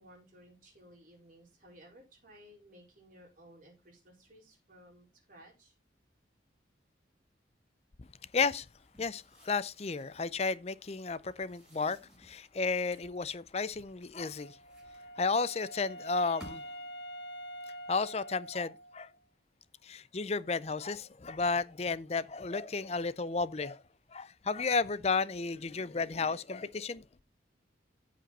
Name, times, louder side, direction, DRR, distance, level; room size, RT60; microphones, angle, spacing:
voice 1, 0.0-5.7, equal, 45° right, 4.8 m, -57 dB
voice 2, 8.3-8.7 9.0-14.6 15.2-16.6 17.9-19.1 19.8-23.8 24.1-27.0, left 4 dB, 35° left, 0.5 m, -33 dB
sound 1, 8.7-10.4 11.3-13.2 13.8-15.4 16.1-16.9, equal, 5° right, 5.3 m, -58 dB
Wind instrument woodwind instrument, 14.4-19.2, equal, 70° left, 1.5 m, -46 dB
14.0 x 5.1 x 4.2 m
head